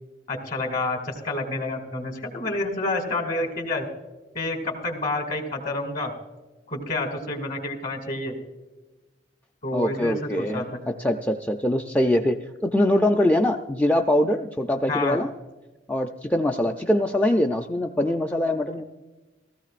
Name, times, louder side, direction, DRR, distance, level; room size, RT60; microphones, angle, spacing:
voice 1, 0.3-3.9 4.3-6.1 6.7-8.3 9.6-10.8 14.9-15.2, left 2 dB, 50° left, 4 dB, 2.2 m, -29 dB
voice 2, 9.7-15.3 15.9-18.8, left 1 dB, 10° left, 3 dB, 0.4 m, -23 dB
16.5 x 14.5 x 2.5 m, 1.2 s
head